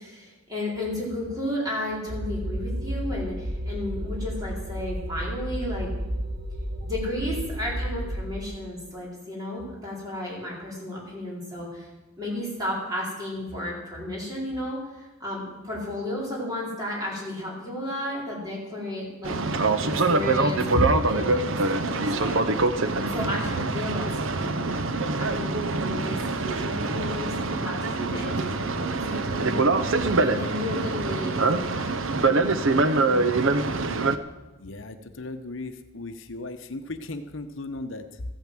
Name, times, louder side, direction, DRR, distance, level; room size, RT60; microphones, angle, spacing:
voice 1, 0.0-5.9 6.8-11.9 12.2-22.4 22.8-24.7 25.2-31.9 32.2-33.3, left 1 dB, 15° right, -5 dB, 4.3 m, -33 dB
sound 1, 2.1-8.3, equal, 45° right, 1.5 m, -32 dB
Boat Water vehicle, 19.2-34.2, right 3 dB, 65° right, 0.8 m, -24 dB
voice 2, 34.6-38.2, left 2 dB, 60° left, 8 dB, 0.9 m, -37 dB
14.5 x 9.1 x 7.6 m, 1.1 s
head